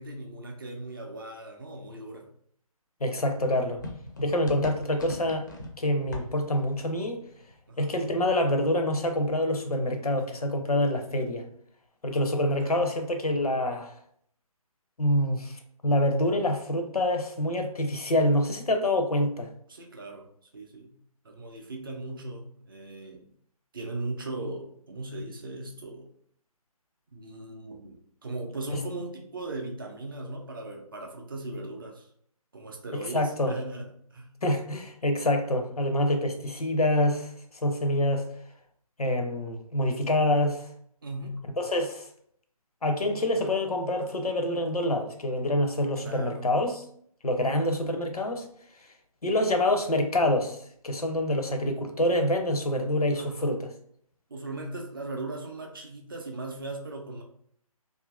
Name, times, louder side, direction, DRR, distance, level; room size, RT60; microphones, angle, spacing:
voice 1, 0.0-2.3 7.7-7.9 12.2-12.9 19.7-20.3 20.5-20.9 21.2-23.3 23.7-26.1 27.1-32.1 32.5-33.9 34.1-34.3 41.0-41.4 46.0-46.4 51.1-51.2 53.2-53.5 54.3-57.2, right 2 dB, 35° right, 2 dB, 0.4 m, -38 dB
voice 2, 3.0-3.8 4.2-5.5 5.8-7.2 7.8-11.4 12.0-14.0 15.0-19.5 33.1-33.5 34.4-37.3 37.5-38.3 39.0-40.6 41.6-42.1 42.8-46.8 47.2-48.5 49.2-50.6 50.8-53.7, left 1 dB, 80° left, 5 dB, 0.6 m, -26 dB
sound 1, 3.2-8.7 9.0-10.5, left 2 dB, 30° left, 0.4 m, -44 dB
2.6 x 2.4 x 2.3 m, 0.64 s
figure-of-eight pair, 145°, 19 cm